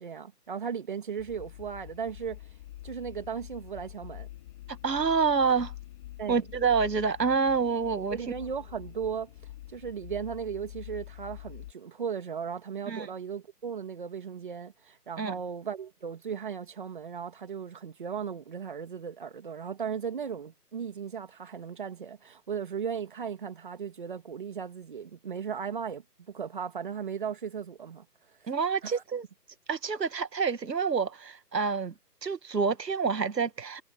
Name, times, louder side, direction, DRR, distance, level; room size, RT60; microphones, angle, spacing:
voice 1, 0.0-2.4 2.8-4.3 6.2-6.4 7.9-9.3 9.7-28.0 28.4-28.5 28.8-29.0, right 7 dB, 30° right, 2.8 m, -36 dB
sound 1, 1.2-11.7, left 14 dB, 15° left, 3.9 m, -46 dB
voice 2, 4.7-5.7 6.3-8.2 12.9-13.1 15.2-15.4 28.5-29.3 29.7-31.9 32.2-33.8, right 5 dB, 80° right, 1.8 m, -27 dB
hypercardioid pair, 175°, 49 cm